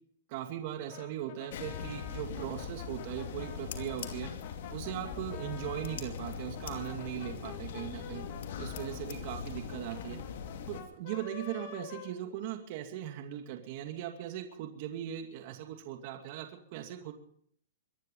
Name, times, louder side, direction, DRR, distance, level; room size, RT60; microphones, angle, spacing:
voice 1, 0.3-4.3 4.7-8.2 8.6-10.2 10.7-17.1, right 11 dB, 50° right, 5 dB, 2.4 m, -39 dB
Brass instrument, 0.9-6.1 6.5-12.8, left 8 dB, 50° left, 2.9 m, -49 dB
sound 1, 1.5-10.8, left 7 dB, 65° left, 2.6 m, -41 dB
24.0 x 11.0 x 5.5 m, 0.62 s
hypercardioid pair, 145°, 0 cm